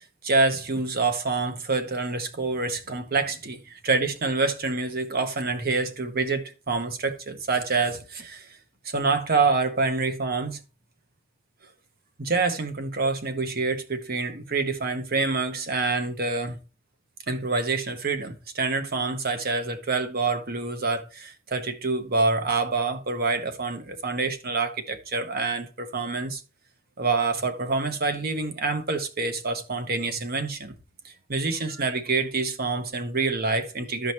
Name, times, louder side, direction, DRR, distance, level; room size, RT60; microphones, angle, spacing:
voice 1, 0.2-8.5 8.8-10.6 12.2-16.6 17.3-26.4 27.0-30.7 31.0-34.1, right 3 dB, 45° right, 1.1 m, -26 dB
14.5 x 5.1 x 3.0 m
head